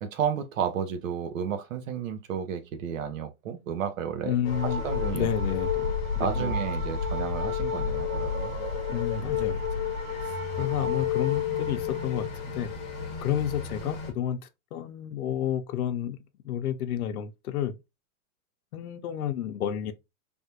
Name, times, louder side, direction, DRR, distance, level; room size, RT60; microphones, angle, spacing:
voice 1, 0.0-4.3 4.6-5.3 6.1-8.5 10.6-10.8, right 8 dB, 65° right, 0.7 m, -32 dB
voice 2, 4.2-4.8 5.1-5.9 6.2-6.6 8.9-9.8 10.6-12.3 12.5-12.7 13.2-14.4 14.7-16.2 16.4-17.7 18.7-19.9, left 10 dB, 85° left, 0.7 m, -30 dB
sound 1, 4.4-14.1, left 5 dB, 30° left, 0.9 m, -30 dB
3.5 x 2.4 x 2.7 m
supercardioid pair, 175°, 43 cm